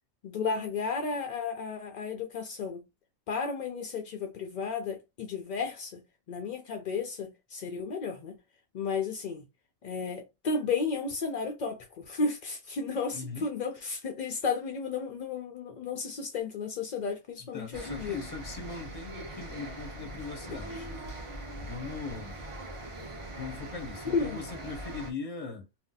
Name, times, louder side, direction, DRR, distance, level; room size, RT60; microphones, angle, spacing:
voice 1, 0.2-2.8 3.3-6.0 6.3-8.4 8.7-9.4 9.8-18.2 20.5-20.8 24.1-24.4, left 4 dB, 60° left, 0.4 m, -33 dB
voice 2, 13.1-13.5 17.5-21.0 21.6-22.4 23.3-25.7, left 4 dB, 35° left, 0.8 m, -40 dB
sound 1, 17.7-25.1, right 1 dB, 30° right, 0.7 m, -42 dB
2.6 x 2.1 x 3.8 m
omnidirectional pair, 1.3 m